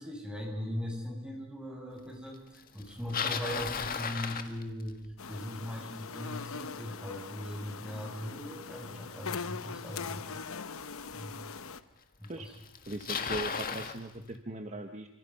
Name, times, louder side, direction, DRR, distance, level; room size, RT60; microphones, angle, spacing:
voice 1, 0.0-5.0 5.3-10.3 11.1-11.3 12.2-12.5, left 1 dB, 5° right, 0 dB, 6.4 m, -39 dB
Bicycle, 2.8-5.1 10.2-10.3 11.1-11.2 12.2-12.3 12.5-14.0, left 6 dB, 40° left, 1.7 m, -35 dB
sound 1, 5.2-11.8, left 5 dB, 70° left, 1.0 m, -41 dB
voice 2, 12.9-15.1, right 2 dB, 35° right, 5 dB, 1.4 m, -39 dB
29.5 x 26.0 x 5.5 m, 0.92 s
head